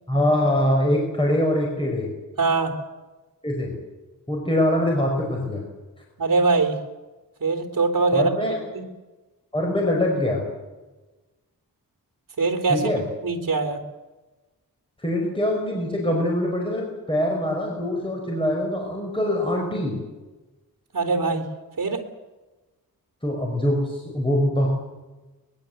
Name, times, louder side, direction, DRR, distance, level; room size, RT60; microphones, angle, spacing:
voice 1, 0.1-2.1 3.4-3.7 4.3-5.6 8.1-8.6 9.5-10.4 12.7-13.0 15.0-20.0 23.2-24.7, left 1 dB, 15° left, -1 dB, 5.3 m, -23 dB
voice 2, 2.4-2.7 6.2-6.8 7.4-8.3 8.7-8.8 12.4-12.9 13.2-13.8 20.9-21.4 21.8-22.0, right 3 dB, 65° right, 5 dB, 3.5 m, -22 dB
23.5 x 22.0 x 8.1 m, 1.2 s
wide cardioid pair, 125°, 36 cm